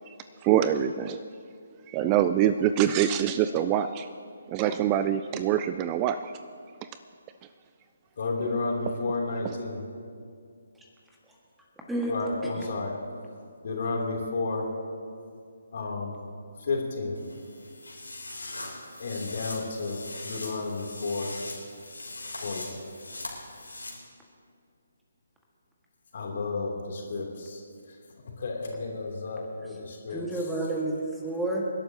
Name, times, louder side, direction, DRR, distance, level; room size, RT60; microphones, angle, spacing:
voice 1, 0.4-1.2 1.9-4.1 4.5-6.3, right 10 dB, 20° right, 11 dB, 0.3 m, -24 dB
voice 2, 8.2-9.8 12.1-12.9 13.6-14.7 15.7-16.2 16.6-17.2 19.0-21.3 22.4-22.7 26.1-27.6 27.9-28.0 28.2-30.2, left 3 dB, 45° left, -1 dB, 3.0 m, -32 dB
sound 1, 17.1-23.9, left 2 dB, 75° left, 3.3 m, -41 dB
voice 3, 30.1-31.6, right 2 dB, 5° right, -2 dB, 1.7 m, -30 dB
28.0 x 12.0 x 2.9 m, 2.3 s
figure-of-eight pair, 140°, 0 cm